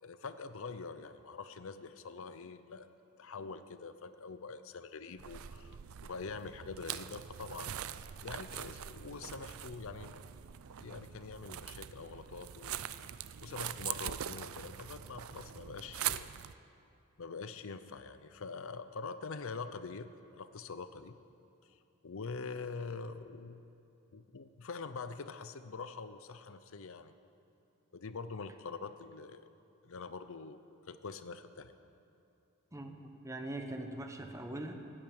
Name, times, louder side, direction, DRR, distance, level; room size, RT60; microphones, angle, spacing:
voice 1, 0.0-2.9 3.2-7.8 8.2-10.2 10.8-12.8 13.4-16.3 17.2-20.1 20.3-21.2 21.6-23.6 24.1-27.1 27.9-29.5 29.8-30.6 30.9-31.7, left 4 dB, 65° left, 11 dB, 0.6 m, -44 dB
sound 1, 5.2-16.6, right 10 dB, 65° right, 0.5 m, -43 dB
voice 2, 32.7-34.7, right 1 dB, 15° right, 4 dB, 1.1 m, -42 dB
16.5 x 8.9 x 9.0 m, 2.8 s
head